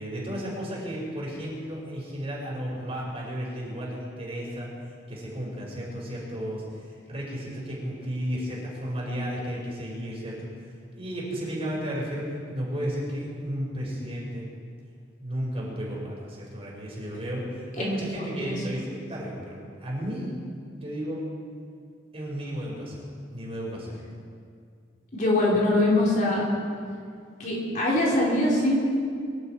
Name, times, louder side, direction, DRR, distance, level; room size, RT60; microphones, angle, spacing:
voice 1, 0.0-4.7 5.1-10.5 10.9-14.5 15.2-17.4 17.7-20.3 20.8-21.2 22.1-23.1 23.3-24.0, equal, 30° right, -5 dB, 5.3 m, -33 dB
voice 2, 25.1-26.4 27.4-28.8, left 1 dB, 45° left, -5 dB, 3.8 m, -23 dB
24.5 x 12.0 x 4.6 m, 2.2 s
head